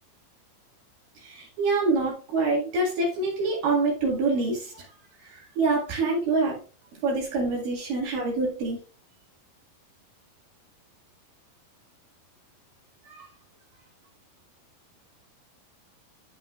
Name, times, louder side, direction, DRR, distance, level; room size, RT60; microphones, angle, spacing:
voice 1, 1.2-4.8 5.2-6.6 7.0-8.8 13.0-13.3, right 3 dB, 70° right, -3 dB, 3.6 m, -26 dB
12.0 x 5.9 x 2.4 m, 0.37 s
omnidirectional pair, 4.2 m